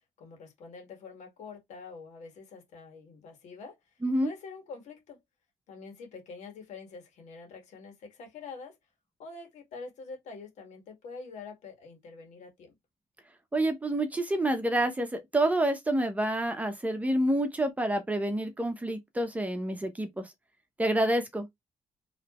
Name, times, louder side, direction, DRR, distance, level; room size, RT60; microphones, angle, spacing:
voice 1, 0.2-3.8 4.2-5.2 5.7-8.8 9.2-12.8, left 4 dB, 85° left, 1.9 m, -46 dB
voice 2, 4.0-4.3 13.5-20.3 20.8-21.5, right 1 dB, 10° right, 1.0 m, -28 dB
4.8 x 3.3 x 3.0 m
cardioid pair, 140°, 12 cm